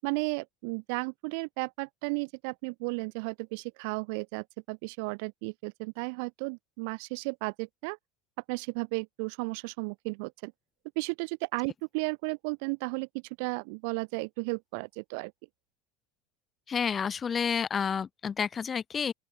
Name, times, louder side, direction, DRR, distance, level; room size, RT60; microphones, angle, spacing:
voice 1, 0.0-8.0 8.5-10.5 11.0-13.1 13.4-15.3, right 34 dB, 70° right, 7.0 m, -34 dB
voice 2, 16.7-19.1, left 7 dB, 20° left, 5.3 m, -30 dB
open air
cardioid pair, 155°, 0 cm